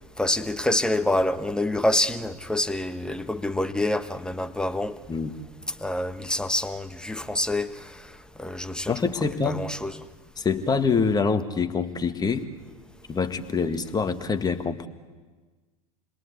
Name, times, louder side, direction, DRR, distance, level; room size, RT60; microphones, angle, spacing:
voice 1, 0.2-5.0 5.8-7.9 8.4-9.0 9.4-9.9, left 1 dB, 5° left, 1.3 m, -26 dB
voice 2, 8.9-9.6 10.4-12.5 13.1-14.9, left 5 dB, 20° left, 1.9 m, -25 dB
28.0 x 21.5 x 8.3 m
figure-of-eight pair, 80°, 19 cm